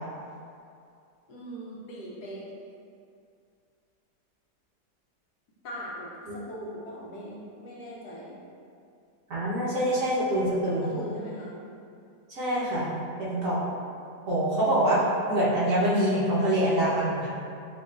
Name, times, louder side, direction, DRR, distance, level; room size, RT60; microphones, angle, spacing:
voice 1, 1.3-2.5 5.6-6.1 6.5-8.4 10.8-11.6, equal, 70° left, -5 dB, 1.2 m, -40 dB
voice 2, 9.3-10.9 12.3-12.9 13.2-13.6 14.3-15.0 15.3-17.3, right 1 dB, 55° right, -9 dB, 1.3 m, -25 dB
5.7 x 3.0 x 2.4 m, 2.4 s
omnidirectional pair, 1.8 m